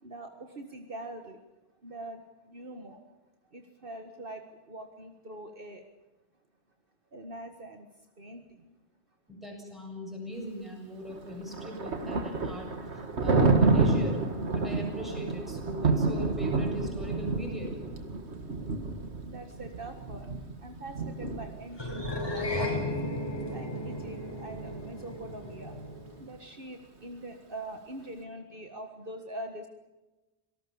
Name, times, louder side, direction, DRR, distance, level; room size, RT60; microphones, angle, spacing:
voice 1, 0.0-1.4 1.8-2.2 2.5-3.0 3.5-5.8 7.1-7.9 8.2-8.4 18.7-19.0 19.3-20.3 20.6-22.9 23.5-25.7 26.2-29.7, right 1 dB, 55° right, 5 dB, 1.9 m, -43 dB
voice 2, 9.3-14.2 14.5-17.8, equal, ahead, 0 dB, 7.5 m, -39 dB
Thunder, 11.1-22.9, right 3 dB, 85° right, 2.2 m, -29 dB
sound 1, 21.8-26.3, left 1 dB, 20° left, 4.7 m, -34 dB
26.5 x 18.5 x 7.2 m, 1.1 s
omnidirectional pair, 1.1 m